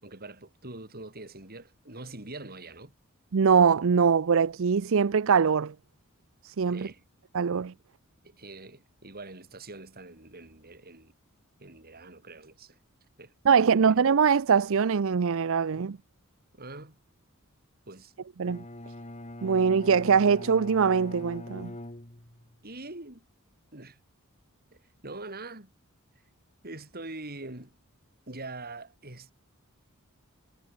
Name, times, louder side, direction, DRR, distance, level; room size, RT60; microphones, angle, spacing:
voice 1, 0.0-2.9 6.7-7.0 8.2-11.1 11.6-12.8 13.2-14.0 15.7-15.9 16.6-17.0 17.9-18.1 22.6-23.3 23.7-24.0 24.7-25.7 26.6-27.8 28.3-29.3, right 2 dB, 45° right, 5.6 m, -44 dB
voice 2, 3.3-5.7 6.4-6.9 7.3-7.7 13.5-16.0 18.4-18.6 19.4-21.7, right 6 dB, 65° right, 0.5 m, -23 dB
Bowed string instrument, 18.4-22.6, left 1 dB, 30° left, 2.8 m, -43 dB
head